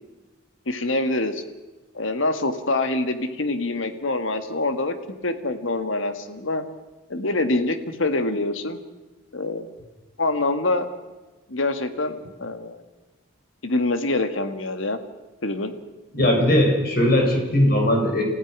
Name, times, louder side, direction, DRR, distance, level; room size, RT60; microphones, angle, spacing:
voice 1, 0.6-1.4 1.9-4.9 5.2-6.7 7.1-8.8 9.3-9.7 10.2-10.9 11.5-12.8 13.6-15.0 15.4-15.7, left 2 dB, 75° left, 9 dB, 1.7 m, -25 dB
voice 2, 16.1-18.2, left 1 dB, 45° left, 2 dB, 4.9 m, -19 dB
28.5 x 15.5 x 6.1 m, 1.2 s
head